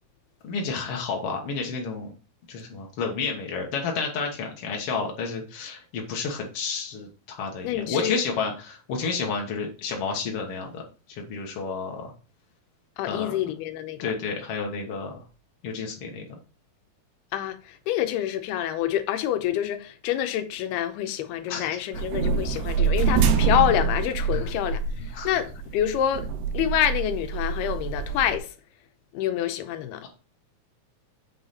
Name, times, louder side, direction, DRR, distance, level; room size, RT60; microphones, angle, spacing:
voice 1, 0.4-2.1 2.5-10.8 11.1-12.1 13.1-13.5 14.0-15.2 15.6-16.4 21.5-21.8 24.3-24.5 25.1-25.3, left 5 dB, 70° left, 1.4 m, -31 dB
voice 2, 7.6-8.2 13.0-14.1 17.3-26.3 26.5-28.5 29.1-30.1, left 11 dB, 85° left, 2.7 m, -27 dB
sound 1, 21.9-28.4, right 5 dB, 70° right, 2.1 m, -26 dB
7.6 x 5.7 x 4.2 m
omnidirectional pair, 4.6 m